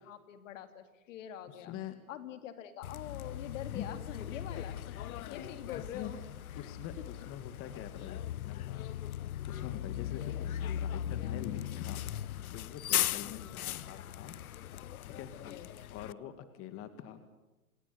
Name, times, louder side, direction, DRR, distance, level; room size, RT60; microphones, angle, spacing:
voice 1, 0.0-1.7 2.1-5.0 5.2-6.2 13.2-13.6 15.4-15.7, left 10 dB, 60° left, 10 dB, 2.7 m, -45 dB
voice 2, 1.5-2.0 3.7-4.6 4.9-6.1 6.6-8.9 9.5-12.0 12.5-14.3 15.0-15.3 15.9-17.2, left 10 dB, 30° left, 10 dB, 2.2 m, -45 dB
Bus, 2.8-16.1, left 11 dB, 80° left, 0.8 m, -38 dB
28.0 x 20.0 x 9.4 m, 1.0 s
hypercardioid pair, 130°, 43 cm